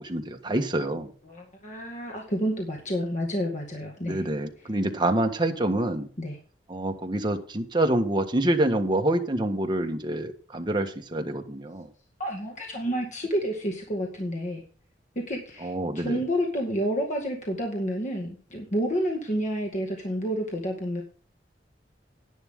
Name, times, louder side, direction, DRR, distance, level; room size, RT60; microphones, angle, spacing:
voice 1, 0.0-1.1 4.1-6.1 6.7-11.9 15.6-16.2, right 1 dB, 25° right, 4 dB, 1.5 m, -26 dB
voice 2, 1.3-4.2 6.2-6.4 12.2-14.6 15.3-21.0, equal, 45° left, 1 dB, 2.1 m, -29 dB
11.0 x 10.0 x 3.8 m, 0.40 s
head